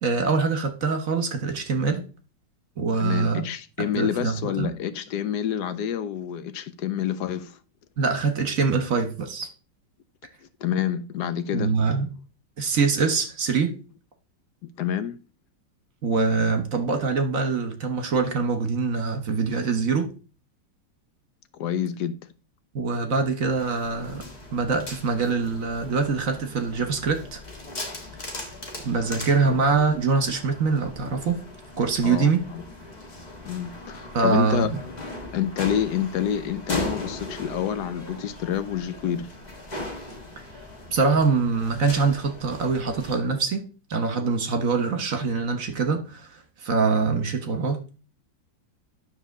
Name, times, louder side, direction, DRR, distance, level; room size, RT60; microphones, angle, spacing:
voice 1, 0.0-2.0 2.8-3.4 3.8-4.7 8.0-9.5 11.5-12.1 12.6-13.7 16.0-20.1 22.7-24.2 24.5-27.4 28.8-31.4 31.8-32.4 34.1-34.7 40.4-40.5 40.9-48.0, right 4 dB, 50° right, 1.6 m, -24 dB
voice 2, 3.0-7.6 10.6-11.7 14.6-15.2 21.5-22.2 29.5-29.6 32.0-32.6 33.4-34.7 35.3-39.3, left 9 dB, 70° left, 1.2 m, -28 dB
sound 1, 23.5-43.2, left 2 dB, 25° left, 1.6 m, -38 dB
10.0 x 3.7 x 6.5 m
omnidirectional pair, 1.9 m